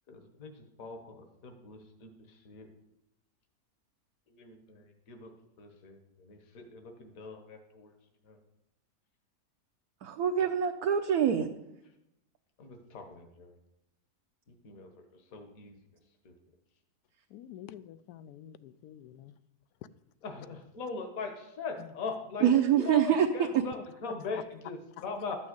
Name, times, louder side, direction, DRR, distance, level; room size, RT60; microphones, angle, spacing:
voice 1, 0.1-0.5 0.8-1.0 1.4-2.1 2.5-2.7 4.3-5.3 5.6-6.0 6.3-7.9 8.3-8.4 12.6-13.5 14.6-14.9 15.3-15.8 16.3-16.4 20.2-25.4, left 4 dB, 60° left, 1.7 m, -40 dB
voice 2, 10.0-11.5 22.4-23.6, right 9 dB, 70° right, 1.2 m, -25 dB
voice 3, 17.3-19.3 21.8-21.9 23.7-23.8 24.3-24.4 25.0-25.1, left 11 dB, 75° left, 1.1 m, -47 dB
12.5 x 6.3 x 7.9 m
omnidirectional pair, 1.8 m